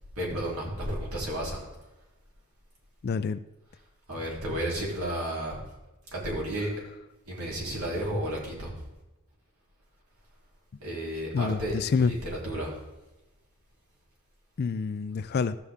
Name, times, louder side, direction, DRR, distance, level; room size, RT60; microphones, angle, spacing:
voice 1, 0.1-1.6 4.1-5.6 6.1-6.7 7.3-8.7 10.8-12.8, right 1 dB, 75° right, -3 dB, 3.2 m, -32 dB
voice 2, 3.0-3.4 11.3-12.1 14.6-15.6, left 5 dB, 45° left, 13 dB, 0.3 m, -27 dB
14.5 x 6.9 x 3.5 m, 1.0 s
head